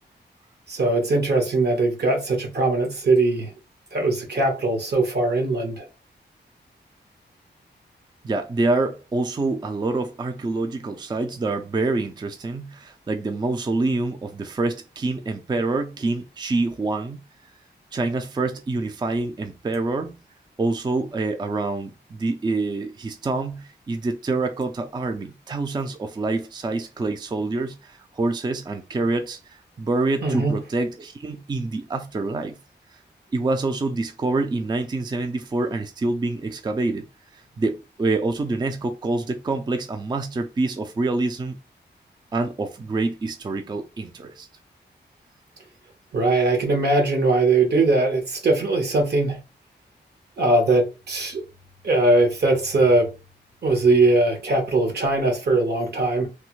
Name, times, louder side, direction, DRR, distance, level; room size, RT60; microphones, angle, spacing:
voice 1, 0.7-3.5 3.9-5.8 30.2-30.6 46.1-49.4 50.4-51.4 51.8-53.1 53.6-56.3, right 2 dB, 65° right, 1.1 m, -20 dB
voice 2, 8.2-17.2 17.9-20.2 20.6-32.6 32.9-33.0 33.3-37.1 37.3-41.6 42.3-44.5, right 3 dB, 25° right, 0.3 m, -26 dB
3.2 x 2.0 x 3.0 m
wide cardioid pair, 90°, 18 cm